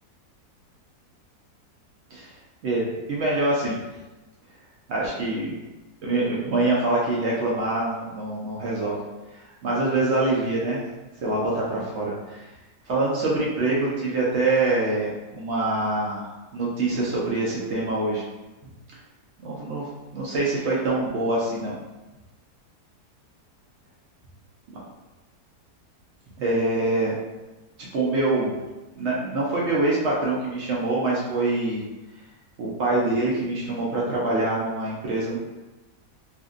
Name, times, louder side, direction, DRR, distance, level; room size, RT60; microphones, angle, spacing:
voice 1, 2.6-3.8 4.9-5.5 6.0-9.0 9.3-10.8 11.2-12.5 12.9-18.2 19.4-21.8 26.4-27.2 27.8-28.5 28.9-31.8 32.6-35.4, right 2 dB, 85° right, -5 dB, 0.6 m, -25 dB
2.6 x 2.5 x 2.4 m, 1.1 s
omnidirectional pair, 1.8 m